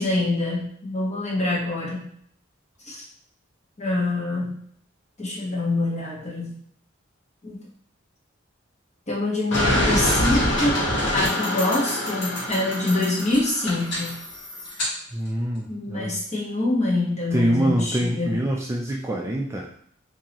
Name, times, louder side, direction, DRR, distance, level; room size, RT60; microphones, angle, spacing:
voice 1, 0.0-2.1 2.8-3.0 3.8-4.6 5.2-6.6 7.4-7.6 9.1-10.8 11.1-14.2 15.7-18.5, left 2 dB, 35° left, -5 dB, 1.2 m, -25 dB
sound 1, 9.5-14.9, left 1 dB, 65° left, 1.4 m, -25 dB
voice 2, 15.1-16.1 17.3-19.7, right 1 dB, 15° right, -1 dB, 0.3 m, -25 dB
3.7 x 2.7 x 2.9 m, 0.63 s
head